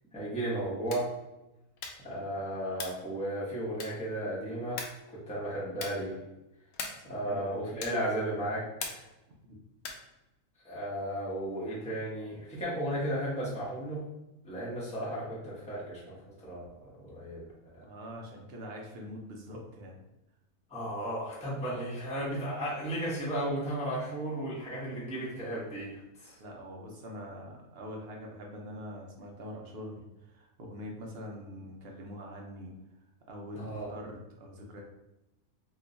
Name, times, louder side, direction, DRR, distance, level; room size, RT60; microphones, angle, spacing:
voice 1, 0.1-1.1 2.0-4.9 5.3-6.2 7.0-9.0 10.6-14.0 14.4-16.1 16.4-16.7 17.0-17.4 17.7-17.8 20.7-26.4 33.5-33.9, right 1 dB, 5° left, -7 dB, 0.7 m, -34 dB
sound 1, 0.8-1.2 1.7-2.1 2.7-3.1 3.7-4.1 4.8-5.1 5.7-6.1 6.7-7.1 7.8-8.1 8.8-9.2 9.8-10.1, left 4 dB, 75° left, 1.0 m, -41 dB
voice 2, 6.9-7.5 9.5-9.6 17.8-20.0 26.4-32.7 33.3-34.8, equal, 60° right, 0 dB, 0.7 m, -44 dB
3.0 x 2.2 x 3.8 m, 0.96 s
omnidirectional pair, 1.5 m